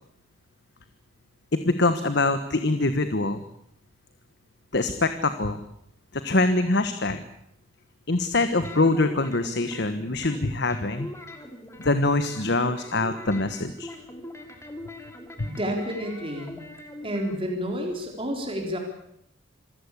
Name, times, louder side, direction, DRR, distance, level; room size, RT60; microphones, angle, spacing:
voice 1, 1.5-3.4 4.7-5.6 6.1-7.2 8.1-11.1 11.8-13.9 15.4-15.5, left 2 dB, 55° left, 10 dB, 1.3 m, -24 dB
sound 1, 8.6-9.9 10.2-12.0 12.2-17.4, left 1 dB, 15° left, 2.7 m, -42 dB
voice 2, 15.4-16.6 17.0-18.8, equal, 25° right, 2 dB, 3.8 m, -30 dB
26.5 x 15.5 x 8.3 m, 0.74 s
head